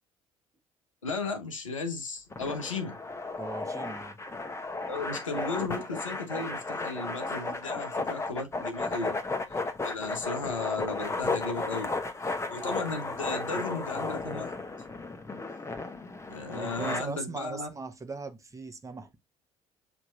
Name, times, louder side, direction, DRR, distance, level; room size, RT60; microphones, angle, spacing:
voice 1, 1.0-3.0 4.9-9.2 9.5-9.6 9.8-11.9 12.2-14.5 16.3-17.7, left 3 dB, 85° left, 0.7 m, -35 dB
sound 1, 2.3-17.0, left 3 dB, 15° left, 0.8 m, -34 dB
voice 2, 3.4-4.2 16.5-19.2, right 3 dB, 20° right, 0.9 m, -39 dB
6.9 x 2.9 x 2.4 m
figure-of-eight pair, 55°, 16 cm